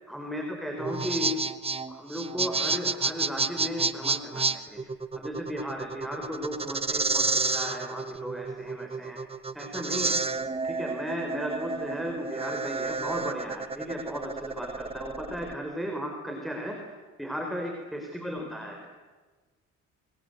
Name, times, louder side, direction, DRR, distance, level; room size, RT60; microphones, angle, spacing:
voice 1, 0.1-1.4 1.9-4.8 5.1-9.2 9.5-10.2 10.6-18.9, equal, ahead, 3 dB, 4.3 m, -35 dB
sound 1, 0.8-15.5, right 4 dB, 20° right, 1.0 m, -30 dB
26.5 x 23.0 x 8.0 m, 1.3 s
cardioid pair, 90°, 30 cm